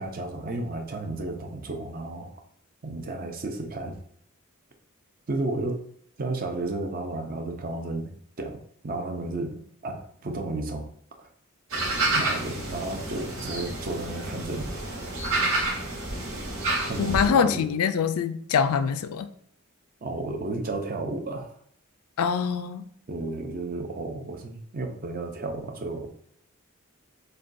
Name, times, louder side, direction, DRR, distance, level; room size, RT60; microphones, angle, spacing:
voice 1, 0.0-2.3 2.8-4.0 5.3-5.8 6.2-10.9 11.2-11.3 12.1-14.8 16.9-17.7 20.0-21.6 23.1-26.1, right 2 dB, 40° right, 0.6 m, -33 dB
sound 1, 11.7-17.3, right 2 dB, 65° right, 1.5 m, -29 dB
voice 2, 17.0-19.3 22.2-22.9, left 6 dB, 80° left, 0.4 m, -24 dB
6.5 x 2.3 x 2.6 m
head